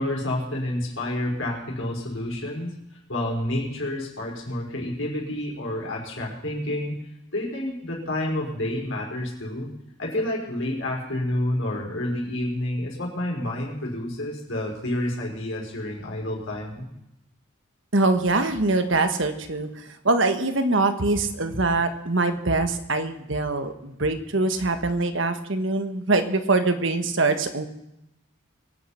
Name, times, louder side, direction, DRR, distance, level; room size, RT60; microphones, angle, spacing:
voice 1, 0.0-6.9 7.3-9.7 10.0-16.9, left 1 dB, 60° left, -2 dB, 5.4 m, -29 dB
voice 2, 17.9-27.7, right 3 dB, 60° right, 8 dB, 1.5 m, -23 dB
23.0 x 9.6 x 5.8 m, 0.84 s
head